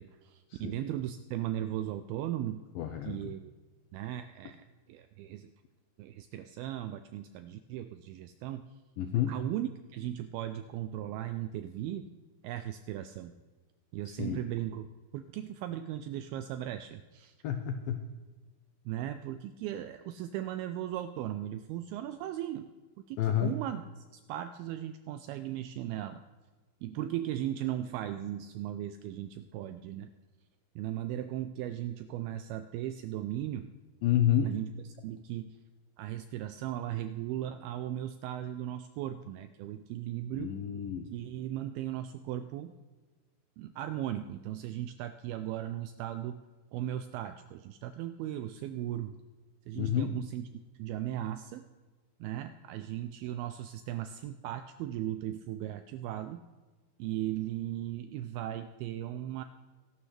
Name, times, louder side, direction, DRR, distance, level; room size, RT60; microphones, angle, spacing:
voice 1, 0.0-2.6 3.1-3.5 3.9-4.6 4.9-5.5 6.0-8.6 9.3-12.1 12.4-13.3 13.9-14.9 15.1-17.3 18.9-22.7 23.1-26.2 26.8-30.1 30.8-33.7 34.4-34.7 35.0-35.6 36.0-40.5 41.1-42.7 43.6-46.4 46.7-49.2 49.7-50.4 50.8-51.6 52.2-56.4 57.0-59.4, right 12 dB, 85° right, 9 dB, 2.2 m, -37 dB
voice 2, 2.8-3.2 9.0-9.4 14.1-14.4 17.4-18.0 23.2-23.6 34.0-34.6 40.3-41.1 49.8-50.2, left 10 dB, 90° left, 6 dB, 2.0 m, -29 dB
23.0 x 12.0 x 3.3 m, 1.3 s
omnidirectional pair, 4.8 m